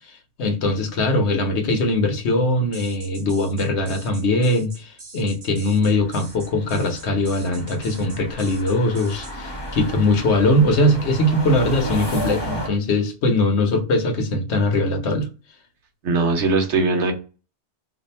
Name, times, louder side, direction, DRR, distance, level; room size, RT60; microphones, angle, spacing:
voice 1, 0.4-15.3, left 1 dB, 70° left, 1.0 m, -21 dB
sound 1, 2.7-9.4, right 3 dB, 40° right, 0.4 m, -43 dB
sound 2, 5.9-12.7, right 1 dB, 25° left, 0.8 m, -33 dB
voice 2, 16.0-17.1, right 3 dB, 75° right, 1.1 m, -20 dB
2.6 x 2.4 x 4.1 m
omnidirectional pair, 1.2 m